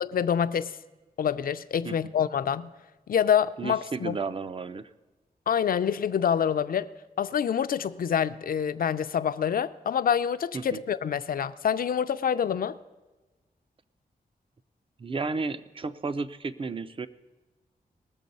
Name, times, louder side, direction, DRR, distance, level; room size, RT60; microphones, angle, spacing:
voice 1, 0.0-0.7 1.2-2.7 3.1-4.2 5.5-6.9 7.2-12.8, left 8 dB, 65° left, 0.5 m, -26 dB
voice 2, 3.6-4.9 10.5-10.8 15.0-17.1, right 4 dB, 35° right, 0.5 m, -33 dB
19.5 x 6.9 x 5.3 m
wide cardioid pair, 105°, 16 cm